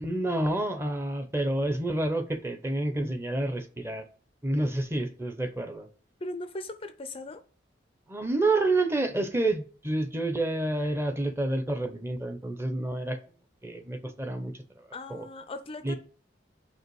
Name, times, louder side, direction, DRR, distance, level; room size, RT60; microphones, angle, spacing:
voice 1, 0.0-4.0 4.4-5.9 8.1-13.2 13.6-15.3 15.8-15.9, right 2 dB, 15° right, 0.8 m, -29 dB
voice 2, 6.2-7.4 14.9-15.9, left 2 dB, 30° left, 0.5 m, -38 dB
5.5 x 4.8 x 4.8 m
head